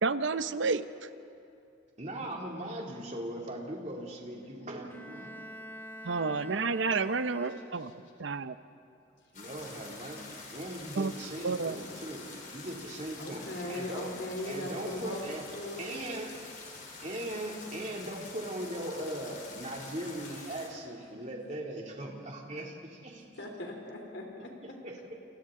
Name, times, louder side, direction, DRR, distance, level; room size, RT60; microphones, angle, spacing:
voice 1, 0.0-1.1 6.0-7.9 8.2-8.6 11.0-11.1 11.4-11.8, right 4 dB, 80° right, 12 dB, 0.7 m, -30 dB
voice 2, 2.0-5.3 9.3-14.2 14.5-15.4 15.8-16.3 17.0-23.3 24.6-25.1, right 1 dB, 40° right, -1 dB, 2.7 m, -39 dB
Bowed string instrument, 4.9-8.1, equal, 10° left, 0.6 m, -46 dB
voice 3, 6.3-6.6 7.0-7.2 7.8-7.9 13.2-15.2 15.5-15.8 23.4-24.7, left 1 dB, 75° left, 1 dB, 3.3 m, -39 dB
sound 1, 9.3-20.7, left 3 dB, 45° left, 3.7 m, -47 dB
30.0 x 28.0 x 3.8 m, 2.6 s
head